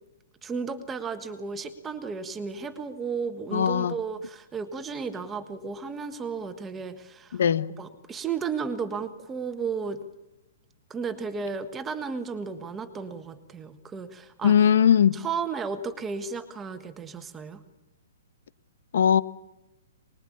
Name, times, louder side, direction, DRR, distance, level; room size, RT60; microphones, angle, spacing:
voice 1, 0.4-7.4 7.8-10.0 10.9-14.7 15.1-17.6, right 5 dB, 10° right, 1.5 m, -34 dB
voice 2, 3.5-4.0 7.3-7.7 14.4-15.2 18.9-19.2, left 8 dB, 60° left, 1.2 m, -20 dB
24.5 x 21.0 x 8.6 m
hypercardioid pair, 175°, 0 cm